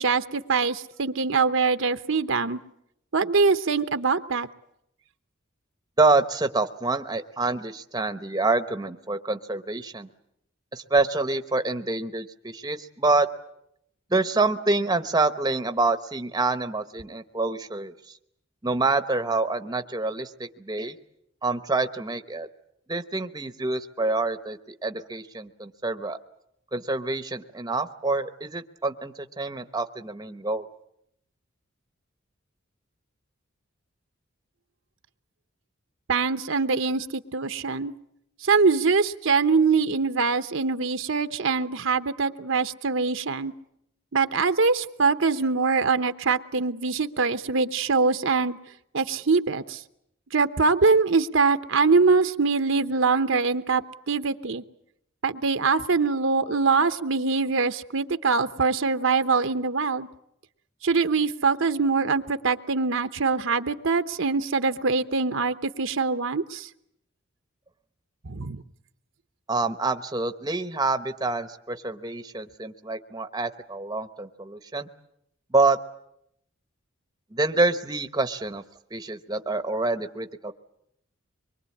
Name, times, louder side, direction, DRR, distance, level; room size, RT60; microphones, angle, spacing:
voice 1, 0.0-2.6 3.1-4.5 36.1-37.9 38.4-43.5 44.1-48.6 48.9-49.8 50.3-53.8 54.1-54.6 55.2-60.1 60.8-66.7 68.2-68.6, right 4 dB, 70° right, 10 dB, 0.9 m, -23 dB
voice 2, 6.0-10.1 10.7-13.3 14.1-18.2 18.6-20.9 21.4-22.5 22.9-26.2 26.7-30.7 69.5-74.9 75.5-75.8 77.3-78.6 78.9-80.5, right 3 dB, 20° right, 9 dB, 0.9 m, -26 dB
24.5 x 23.0 x 8.5 m, 0.77 s
head